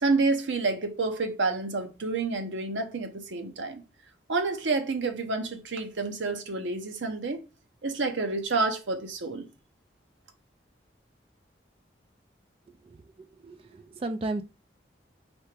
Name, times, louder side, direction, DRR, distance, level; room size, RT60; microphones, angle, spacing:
voice 1, 0.0-3.8 4.3-7.4 7.8-9.5, right 3 dB, 90° right, 0.8 m, -29 dB
voice 2, 13.4-14.4, right 2 dB, 30° right, 0.3 m, -33 dB
4.3 x 3.4 x 3.3 m
head